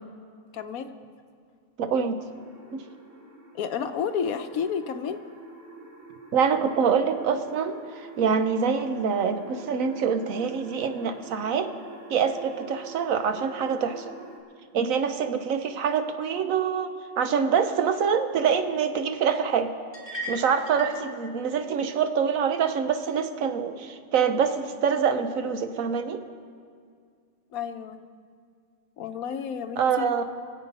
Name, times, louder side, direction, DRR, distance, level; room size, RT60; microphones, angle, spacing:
voice 1, 0.5-0.9 3.5-5.2 27.5-28.0 29.0-30.2, left 7 dB, 85° left, 8 dB, 1.3 m, -31 dB
voice 2, 1.8-2.2 2.7-2.8 6.3-11.7 12.1-14.1 14.7-19.7 20.3-26.2 29.8-30.2, right 6 dB, 70° right, 8 dB, 1.2 m, -25 dB
sound 1, 2.3-14.4, right 2 dB, 40° right, 2.6 m, -46 dB
sound 2, 19.9-21.0, right 1 dB, 20° left, 1.8 m, -35 dB
23.0 x 8.1 x 5.3 m, 2.2 s
omnidirectional pair, 1.5 m